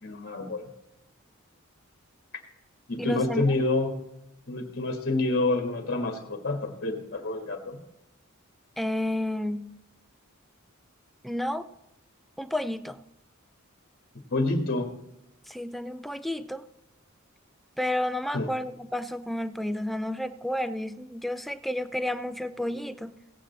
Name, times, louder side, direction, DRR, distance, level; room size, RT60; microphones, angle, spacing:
voice 1, 0.0-0.7 2.9-4.0 4.5-7.8 14.3-14.9 18.3-18.5, left 2 dB, 50° left, 4 dB, 1.6 m, -28 dB
voice 2, 3.0-3.4 8.8-9.7 11.2-11.7 12.4-13.0 15.5-16.7 17.8-23.1, left 1 dB, ahead, 11 dB, 0.5 m, -31 dB
17.0 x 8.6 x 4.2 m, 0.92 s
head